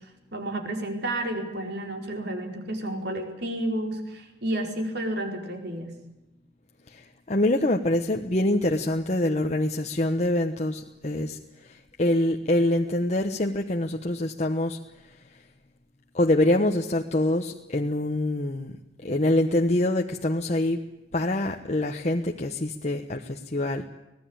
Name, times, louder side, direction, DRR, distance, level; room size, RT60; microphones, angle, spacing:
voice 1, 0.3-5.9, right 1 dB, 60° right, 4 dB, 4.9 m, -31 dB
voice 2, 6.9-15.2 16.1-18.7 19.0-20.8 21.1-23.8, left 1 dB, 35° left, 3 dB, 1.2 m, -25 dB
25.0 x 18.5 x 8.8 m, 0.98 s
head